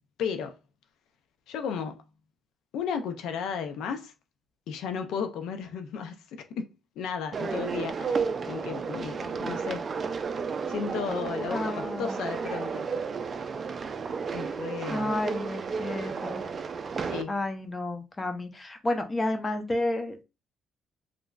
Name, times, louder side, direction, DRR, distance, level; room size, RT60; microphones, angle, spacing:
voice 1, 0.2-0.6 1.5-2.0 2.7-4.1 4.7-6.7 7.0-9.8 10.7-12.9 14.3-15.1 17.1-17.3, left 7 dB, 85° left, 0.3 m, -34 dB
sound 1, 7.3-17.2, right 5 dB, 45° right, 0.3 m, -32 dB
voice 2, 11.5-12.2 14.9-16.4 17.3-20.2, left 2 dB, 25° left, 0.6 m, -31 dB
2.9 x 2.5 x 2.2 m
cardioid pair, 90°, 0 cm